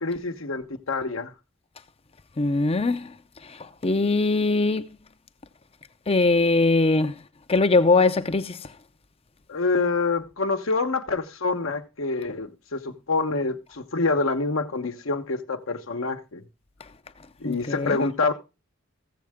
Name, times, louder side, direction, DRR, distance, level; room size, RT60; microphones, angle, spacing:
voice 1, 0.0-1.3 9.5-16.4 17.4-18.3, left 3 dB, 75° left, 1.1 m, -26 dB
voice 2, 2.4-3.1 3.8-4.9 6.1-7.1 7.5-8.6 17.4-18.0, left 3 dB, 30° left, 0.6 m, -21 dB
15.0 x 7.5 x 3.5 m
head